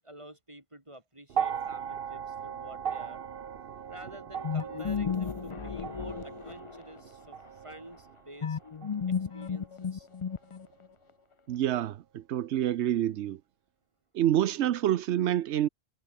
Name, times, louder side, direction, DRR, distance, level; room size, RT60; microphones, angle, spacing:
voice 1, 0.0-3.2 3.9-8.6 9.3-10.1, right 1 dB, 25° right, 5.9 m, -49 dB
sound 1, 1.3-9.6 10.7-10.8, right 8 dB, 60° right, 1.0 m, -38 dB
sound 2, 4.4-7.0 8.4-10.9, left 6 dB, 40° left, 0.5 m, -33 dB
voice 2, 11.5-13.4 14.1-15.7, right 12 dB, 90° right, 1.0 m, -27 dB
omnidirectional pair, 1.1 m